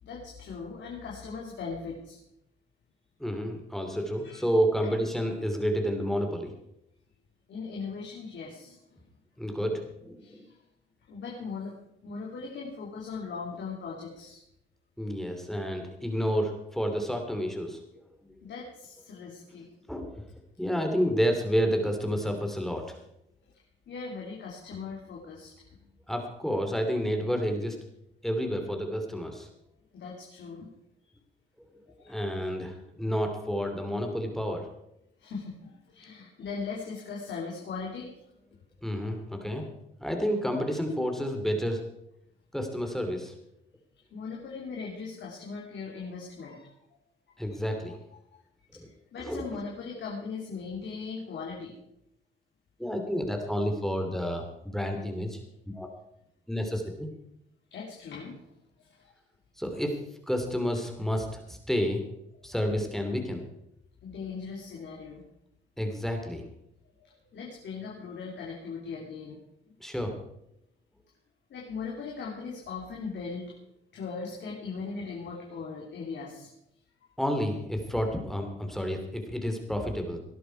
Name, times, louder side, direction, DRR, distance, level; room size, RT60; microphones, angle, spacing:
voice 1, 0.0-2.2 4.2-4.5 4.8-4.9 7.5-9.0 10.2-10.6 11.0-11.7 12.0-14.4 18.4-19.7 23.9-25.8 29.9-30.7 32.0-32.3 33.0-33.1 35.2-38.1 44.1-46.7 47.3-47.6 48.3-48.4 48.7-51.8 57.7-58.5 58.8-59.1 64.0-65.2 67.0-69.4 71.5-73.5 73.9-76.5, left 5 dB, 65° left, -2 dB, 3.2 m, -39 dB
voice 2, 3.2-6.5 9.4-10.4 15.0-18.5 19.9-20.2 20.6-23.0 26.1-27.8 28.2-29.5 32.0-34.7 38.8-41.8 42.5-43.3 47.4-48.0 48.7-48.9 49.2-49.6 52.8-55.4 55.7-55.9 56.5-57.1 59.6-60.0 60.3-62.0 62.4-63.4 65.8-66.5 69.8-70.1 77.2-80.2, equal, ahead, 4 dB, 3.0 m, -30 dB
18.5 x 11.0 x 4.7 m, 0.80 s
cardioid pair, 90°, 20 cm